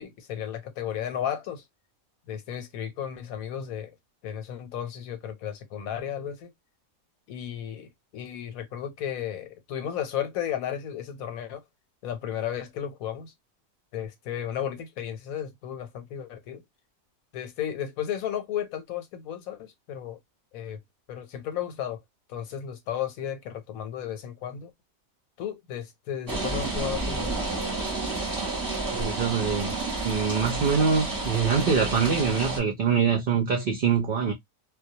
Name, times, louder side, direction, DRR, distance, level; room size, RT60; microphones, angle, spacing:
voice 1, 0.0-1.6 2.3-3.9 4.2-6.5 7.3-11.6 12.0-13.3 13.9-16.6 17.3-20.2 20.5-20.8 21.1-22.0 22.3-24.7 25.4-27.3, left 9 dB, 85° left, 1.1 m, -34 dB
sound 1, 26.3-32.6, right 3 dB, 15° right, 0.8 m, -30 dB
voice 2, 28.9-29.7 30.0-34.3, right 6 dB, 60° right, 0.5 m, -24 dB
2.3 x 2.1 x 2.6 m
omnidirectional pair, 1.4 m